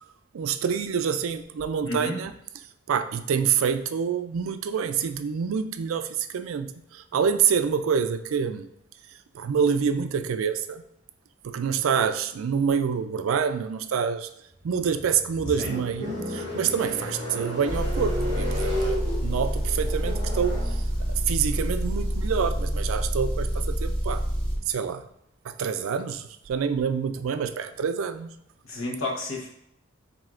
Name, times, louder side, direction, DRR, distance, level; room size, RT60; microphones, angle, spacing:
voice 1, 0.3-2.3 2.9-8.7 9.3-10.8 11.4-14.3 14.6-20.8 21.3-24.3 24.7-25.1 25.4-28.3, right 7 dB, 80° right, 11 dB, 0.4 m, -27 dB
voice 2, 1.8-2.2 15.6-15.7 28.6-29.5, left 2 dB, 80° left, -1 dB, 1.1 m, -31 dB
sound 1, 14.6-24.9, left 1 dB, 35° right, 1.8 m, -35 dB
Motor vehicle (road) / Engine, 17.7-24.6, equal, 5° left, 1.2 m, -27 dB
7.4 x 2.8 x 2.5 m, 0.78 s
head